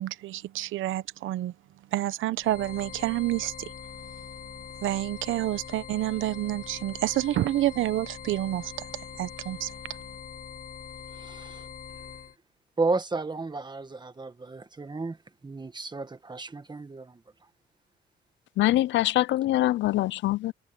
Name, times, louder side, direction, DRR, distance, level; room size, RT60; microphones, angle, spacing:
voice 1, 0.0-1.5 1.9-3.7 4.8-8.9 9.2-9.7, right 15 dB, 80° right, 1.0 m, -28 dB
sound 1, 2.4-12.3, left 8 dB, 45° left, 1.1 m, -43 dB
voice 2, 11.1-11.7 12.8-15.2 15.4-17.2, right 3 dB, 20° right, 1.7 m, -32 dB
voice 3, 18.6-20.5, left 15 dB, 70° left, 0.4 m, -24 dB
cardioid pair, 90°, 20 cm